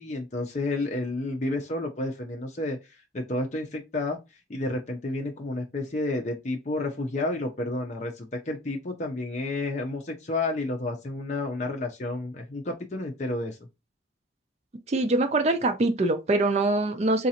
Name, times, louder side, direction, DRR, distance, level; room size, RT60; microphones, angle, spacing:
voice 1, 0.0-2.8 3.1-4.2 4.5-13.6, left 2 dB, 40° left, 0.6 m, -30 dB
voice 2, 14.9-17.3, right 2 dB, 35° right, 0.4 m, -23 dB
4.0 x 2.5 x 2.8 m
head